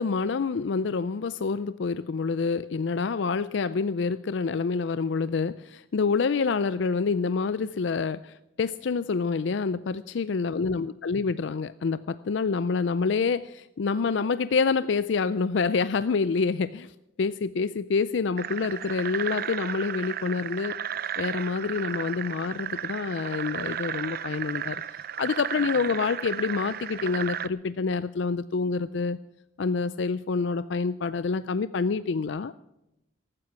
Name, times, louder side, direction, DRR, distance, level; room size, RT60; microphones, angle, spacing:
voice 1, 0.0-16.9 17.2-20.8 21.2-29.2 29.6-32.5, left 4 dB, 65° left, 15 dB, 0.4 m, -27 dB
sound 1, 18.4-27.5, right 9 dB, 50° right, 0.5 m, -34 dB
15.5 x 12.5 x 5.9 m, 0.88 s
head